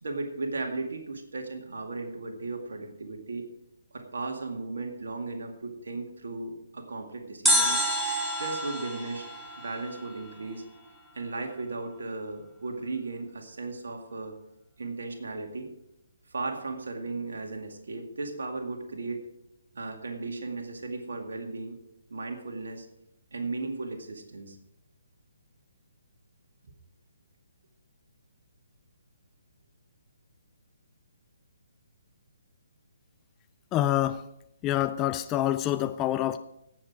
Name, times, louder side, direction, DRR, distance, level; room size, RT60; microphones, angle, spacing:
voice 1, 0.0-3.5 3.9-7.8 8.4-9.3 9.6-10.6 11.1-14.4 14.8-15.7 16.3-19.3 19.7-21.8 22.1-22.9 23.3-24.6, right 3 dB, 60° right, 4 dB, 2.2 m, -36 dB
sound 1, 7.5-10.5 10.8-10.9, equal, ahead, 1.3 m, -28 dB
voice 2, 33.7-34.2 34.6-36.4, left 13 dB, 20° left, 11 dB, 0.4 m, -26 dB
17.5 x 7.7 x 4.7 m, 0.84 s
figure-of-eight pair, 135°, 0 cm